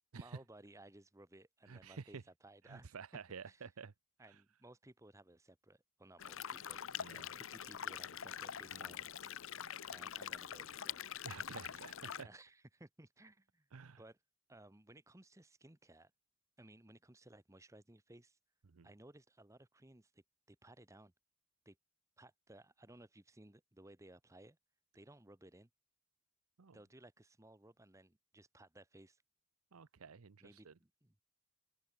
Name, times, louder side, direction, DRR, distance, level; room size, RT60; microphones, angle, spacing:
voice 1, 0.1-3.0 3.5-3.7 4.2-9.0 9.4-9.6 9.9-11.1 11.6-11.8 12.2-14.2 14.5-16.1 16.6-18.4 18.8-20.2 20.5-21.1 21.6-21.8 22.2-24.6 24.9-25.7 26.7-29.2 30.4-31.2, right 1 dB, 15° right, 1.1 m, -60 dB
voice 2, 1.7-2.2 2.6-3.9 4.2-4.4 7.0-7.3 8.7-8.9 11.2-12.3 13.7-14.0 18.7-18.9 26.6-26.8 29.7-30.7, right 5 dB, 85° right, 0.7 m, -51 dB
sound 1, 6.2-12.2, left 9 dB, 65° left, 0.7 m, -45 dB
open air
head